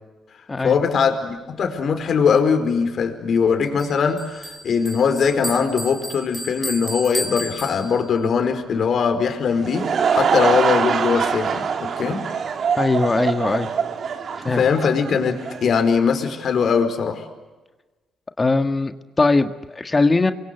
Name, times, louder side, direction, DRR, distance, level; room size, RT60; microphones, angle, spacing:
voice 1, 0.6-12.2 14.5-17.3, left 6 dB, 60° left, 6 dB, 4.7 m, -21 dB
Bell, 3.8-8.3, right 1 dB, 10° right, 3.5 m, -33 dB
Laughter / Crowd, 9.4-15.7, right 6 dB, 55° right, 2.8 m, -23 dB
voice 2, 12.8-13.7 14.4-14.6 18.4-20.3, left 3 dB, 25° left, 8 dB, 1.6 m, -20 dB
29.5 x 23.5 x 8.1 m, 1.2 s
cardioid pair, 90°, 0 cm